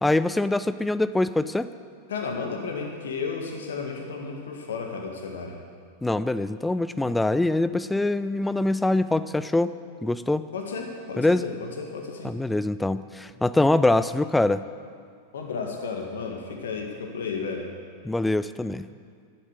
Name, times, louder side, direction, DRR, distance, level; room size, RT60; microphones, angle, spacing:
voice 1, 0.0-1.7 6.0-9.8 10.0-10.5 11.2-11.4 12.2-14.6 18.0-18.9, left 2 dB, 5° left, 14 dB, 0.5 m, -24 dB
voice 2, 2.1-5.6 10.5-12.3 15.3-17.7, left 5 dB, 65° left, 2 dB, 1.7 m, -33 dB
12.0 x 11.0 x 8.2 m, 2.1 s
figure-of-eight pair, 90°, 0 cm